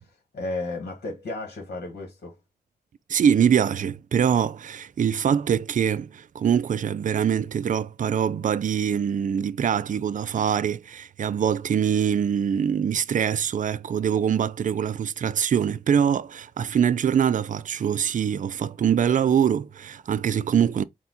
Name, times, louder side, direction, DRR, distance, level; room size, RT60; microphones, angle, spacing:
voice 1, 0.0-2.4, left 2 dB, 75° left, 1.5 m, -33 dB
voice 2, 3.1-20.8, right 8 dB, 50° right, 0.4 m, -23 dB
4.3 x 2.3 x 3.8 m
cardioid pair, 55°, 17 cm